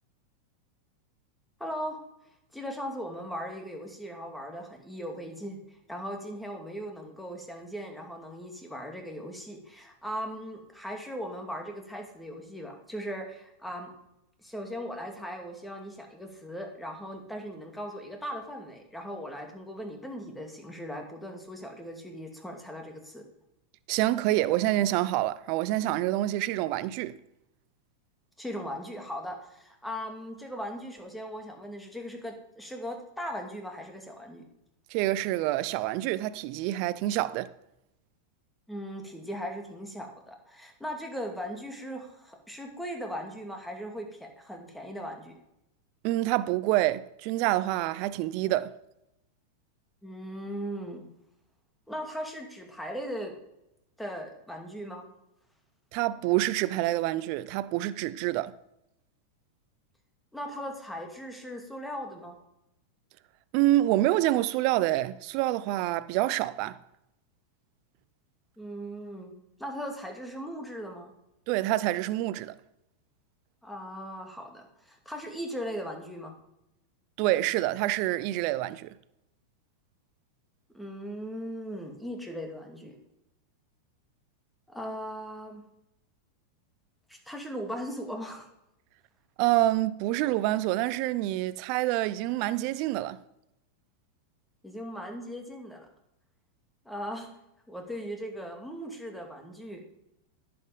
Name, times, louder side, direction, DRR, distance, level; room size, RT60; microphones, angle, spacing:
voice 1, 1.6-2.0 2.5-5.6 5.9-13.9 14.4-23.2 28.4-34.4 38.7-45.4 50.0-51.0 51.9-53.3 54.0-55.0 60.3-62.3 68.6-69.3 69.6-71.1 73.6-76.3 80.7-83.0 84.7-85.6 87.1-88.5 94.6-95.9 96.8-97.3 97.7-99.9, equal, 5° left, 2.5 m, -38 dB
voice 2, 23.9-27.2 34.9-37.5 46.0-48.7 55.9-58.5 63.5-66.8 71.5-72.6 77.2-78.9 89.4-93.2, right 15 dB, 50° right, 0.6 m, -27 dB
10.5 x 7.8 x 5.1 m
hypercardioid pair, 100°, 0 cm